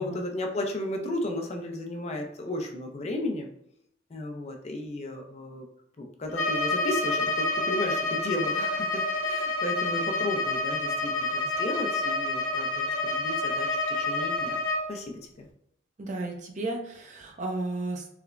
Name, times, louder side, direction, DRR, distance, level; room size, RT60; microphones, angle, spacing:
voice 1, 0.0-3.5 4.1-5.7 6.0-14.6 14.9-15.5, left 1 dB, 35° left, 3 dB, 0.4 m, -34 dB
Bowed string instrument, 6.3-14.9, left 2 dB, 80° left, 0.6 m, -28 dB
voice 2, 9.8-10.1 16.0-18.1, right 2 dB, 40° right, 2 dB, 0.5 m, -34 dB
3.1 x 2.0 x 2.3 m, 0.72 s
head